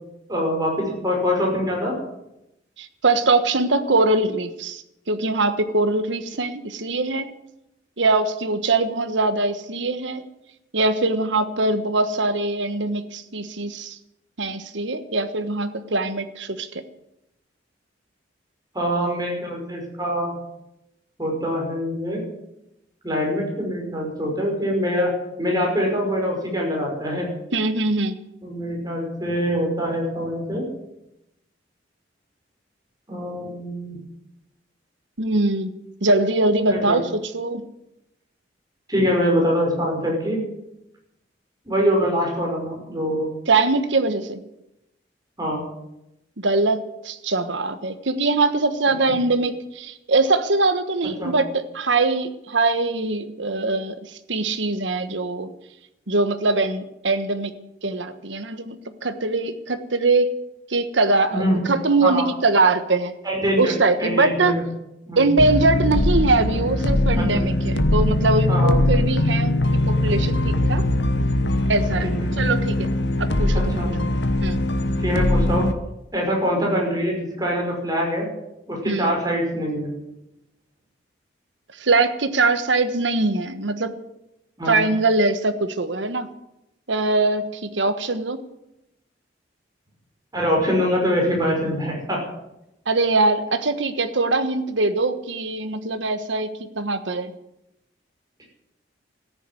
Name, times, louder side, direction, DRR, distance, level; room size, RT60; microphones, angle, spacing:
voice 1, 0.3-2.0 18.7-20.3 21.2-22.2 23.0-25.1 25.4-27.3 28.4-30.6 33.1-34.0 36.7-37.0 38.9-40.4 41.7-43.3 45.4-45.6 51.2-51.3 61.3-61.6 62.0-62.3 63.2-63.7 64.0-64.6 65.1-65.3 67.2-67.4 68.5-68.8 72.0-72.3 73.5-73.9 75.0-75.7 76.1-78.3 78.7-79.9 84.6-84.8 90.3-92.2, equal, 20° right, -1 dB, 5.7 m, -24 dB
voice 2, 2.8-4.8 5.1-7.3 8.0-10.2 10.7-14.0 14.4-16.8 27.5-28.2 35.2-35.7 36.0-37.7 43.5-44.4 46.4-55.5 56.1-57.5 57.8-60.3 60.7-63.1 63.6-64.5 65.2-70.8 71.7-72.1 72.4-72.9 73.2-73.8 74.4-74.6 78.9-79.1 81.8-84.0 84.7-86.3 86.9-88.4 92.9-97.3, right 3 dB, 80° right, 10 dB, 1.3 m, -22 dB
sound 1, 65.4-75.7, left 1 dB, 65° left, 1.2 m, -21 dB
14.0 x 10.0 x 9.4 m, 0.87 s
head